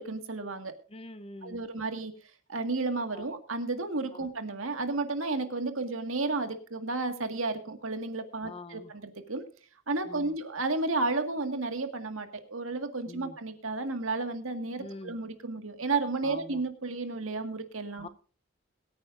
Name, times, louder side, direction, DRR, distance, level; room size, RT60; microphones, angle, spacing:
voice 1, 0.0-0.7 1.4-2.1 2.5-9.4 9.9-18.1, right 3 dB, 75° right, 7 dB, 1.9 m, -32 dB
voice 2, 0.9-1.6 3.1-3.3 4.1-4.3 8.4-8.9 10.1-10.3 13.1-13.4 14.8-15.1 16.2-16.6 18.0-18.1, left 2 dB, 25° left, 11 dB, 0.8 m, -44 dB
22.5 x 9.5 x 2.6 m, 0.41 s
head